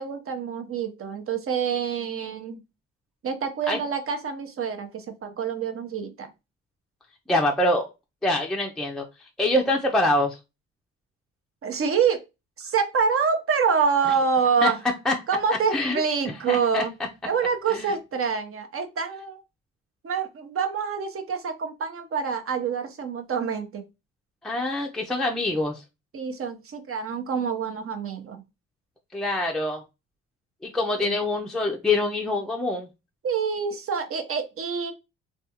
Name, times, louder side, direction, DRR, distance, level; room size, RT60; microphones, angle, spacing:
voice 1, 0.0-2.6 3.2-6.3 11.6-12.2 12.6-14.8 15.3-16.9 17.3-19.4 20.0-23.8 26.1-28.4 31.0-31.2 33.2-34.9, right 6 dB, 45° right, 6 dB, 0.8 m, -26 dB
voice 2, 7.3-7.9 8.2-9.1 9.4-10.4 14.6-14.7 15.1-15.2 15.7-16.0 16.5-16.8 17.7-17.9 24.4-25.8 29.1-29.8 30.6-32.9, left 2 dB, ahead, 1 dB, 0.5 m, -24 dB
3.4 x 2.4 x 2.8 m, 0.25 s
cardioid pair, 90°, 30 cm